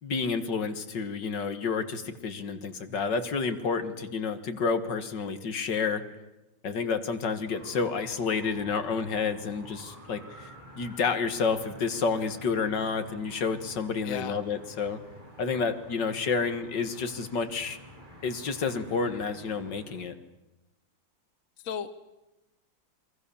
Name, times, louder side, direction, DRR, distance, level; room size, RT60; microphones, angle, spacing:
voice 1, 0.0-6.0 6.6-15.0 15.4-17.8 18.2-20.1, left 5 dB, 65° left, 10 dB, 2.3 m, -30 dB
sound 1, 7.4-20.1, equal, 25° right, 7.3 m, -49 dB
voice 2, 14.0-14.4 21.6-21.9, left 7 dB, 50° left, 11 dB, 1.3 m, -34 dB
28.0 x 23.5 x 7.1 m, 1.0 s
omnidirectional pair, 2.0 m